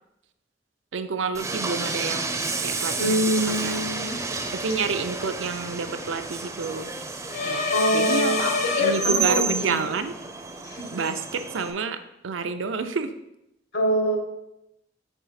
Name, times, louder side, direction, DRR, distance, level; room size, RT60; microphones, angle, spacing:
voice 1, 0.9-2.3 2.6-3.7 4.5-6.9 7.4-8.4 8.8-10.1 10.9-12.0 12.2-13.1, right 4 dB, 85° right, 9 dB, 0.5 m, -29 dB
Train, 1.3-11.7, right 4 dB, 15° right, 0.5 m, -31 dB
voice 2, 3.0-4.2 7.7-9.8 10.6-10.8 13.7-14.2, equal, 70° left, 3 dB, 1.2 m, -25 dB
sound 1, 7.3-9.7, left 4 dB, 45° left, 0.6 m, -27 dB
4.5 x 4.1 x 5.6 m, 0.86 s
head